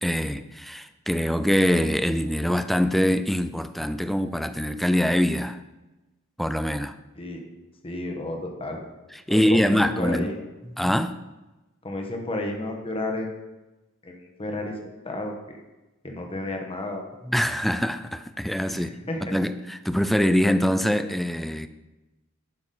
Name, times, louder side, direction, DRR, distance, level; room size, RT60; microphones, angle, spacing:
voice 1, 0.0-5.6 6.4-6.9 9.1-10.3 10.8-11.1 17.2-18.9 19.2-21.7, equal, ahead, 10 dB, 0.3 m, -24 dB
voice 2, 7.8-8.8 9.3-10.4 11.8-13.3 14.0-15.6 16.0-17.0 18.7-19.3, left 1 dB, 25° left, 2 dB, 1.2 m, -32 dB
11.0 x 5.9 x 3.9 m, 1.1 s
head